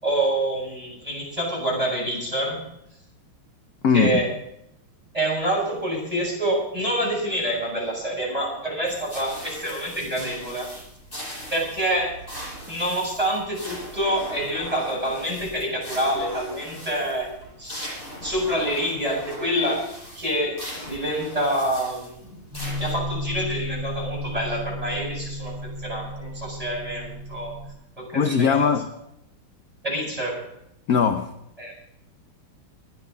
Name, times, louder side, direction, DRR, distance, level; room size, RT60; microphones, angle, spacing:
voice 1, 0.0-2.7 3.9-4.3 5.1-10.7 11.5-12.2 12.7-17.3 17.6-17.9 18.2-19.9 20.1-22.4 22.8-27.5 28.0-28.7 29.8-30.4 31.6-31.7, right 1 dB, 15° right, -3 dB, 8.0 m, -27 dB
voice 2, 3.8-4.2 28.1-28.9 30.9-31.3, left 6 dB, 55° left, 7 dB, 1.2 m, -20 dB
sound 1, 8.9-22.9, equal, 25° left, 8.3 m, -40 dB
sound 2, 22.5-27.7, left 1 dB, 75° left, 8.5 m, -33 dB
24.5 x 11.0 x 4.0 m, 0.78 s
omnidirectional pair, 2.2 m